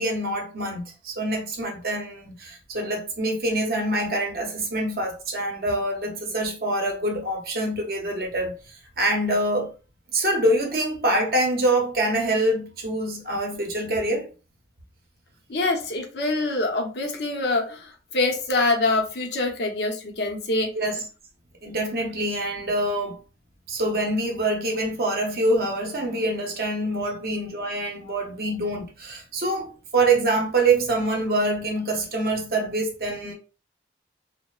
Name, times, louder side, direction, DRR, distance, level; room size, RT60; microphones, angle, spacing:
voice 1, 0.0-9.7 10.1-14.3 20.7-21.0 21.6-23.2 23.7-33.3, right 1 dB, 55° right, 0.7 m, -25 dB
voice 2, 15.5-20.7, left 2 dB, 70° left, 0.6 m, -25 dB
2.8 x 2.0 x 2.3 m
head